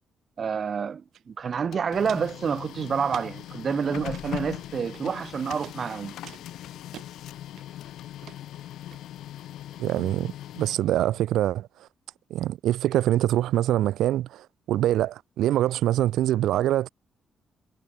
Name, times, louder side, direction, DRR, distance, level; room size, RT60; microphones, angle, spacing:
voice 1, 0.4-6.1, right 6 dB, 40° right, 1.8 m, -28 dB
Walk footsteps, 1.1-1.2 1.5-2.4 3.1-3.5 4.0-4.3 4.9-5.3 5.6-5.8 6.2-7.1 7.6-7.9 8.2-8.4 8.9-9.0, right 10 dB, 65° right, 4.3 m, -45 dB
Printer, 1.4-11.2, left 13 dB, 85° left, 6.3 m, -40 dB
voice 2, 9.8-11.9 12.3-16.9, right 13 dB, 90° right, 0.7 m, -24 dB
cardioid pair, 145°, 0 cm